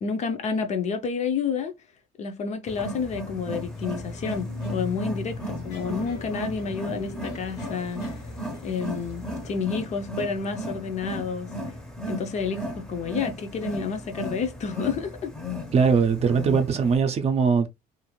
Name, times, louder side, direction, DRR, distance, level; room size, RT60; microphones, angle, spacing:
voice 1, 0.0-1.7 2.2-8.2 8.6-11.5 12.1-15.3, left 5 dB, 40° left, 0.5 m, -30 dB
Wild animals, 2.7-17.0, equal, 5° left, 0.6 m, -35 dB
sound 1, 3.7-9.6, left 4 dB, 75° left, 0.9 m, -44 dB
voice 2, 15.7-17.7, right 5 dB, 35° right, 0.5 m, -21 dB
2.5 x 2.4 x 3.0 m
cardioid pair, 115°, 18 cm